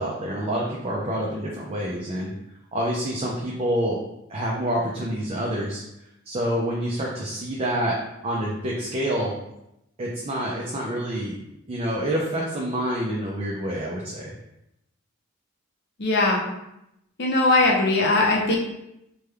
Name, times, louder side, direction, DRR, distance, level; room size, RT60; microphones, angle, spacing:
voice 1, 0.0-2.3 2.7-4.0 4.3-5.8 6.3-7.9 8.2-9.3 10.0-11.4 11.7-14.3, right 1 dB, 30° right, -3 dB, 0.4 m, -27 dB
voice 2, 16.0-16.4 17.2-18.6, left 2 dB, 50° left, -1 dB, 0.6 m, -20 dB
3.3 x 2.2 x 3.2 m, 0.85 s
head